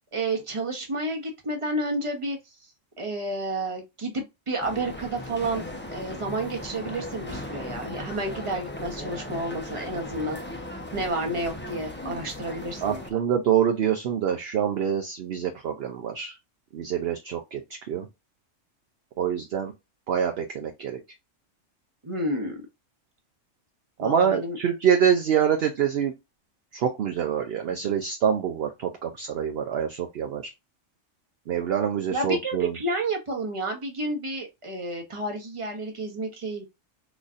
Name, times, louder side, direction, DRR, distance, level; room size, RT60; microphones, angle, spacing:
voice 1, 0.1-2.4 3.0-5.6 5.9-10.6 10.9-13.2 22.0-22.6 24.0-24.6 32.1-36.7, right 2 dB, 25° right, 1.0 m, -30 dB
sound 1, 4.6-13.1, left 1 dB, 15° left, 0.5 m, -37 dB
voice 2, 12.8-16.4 16.7-17.6 17.9-18.1 19.2-19.7 20.1-21.0 24.0-26.1 26.7-30.4 31.5-32.8, right 8 dB, 60° right, 0.7 m, -25 dB
4.0 x 3.1 x 2.4 m
omnidirectional pair, 1.3 m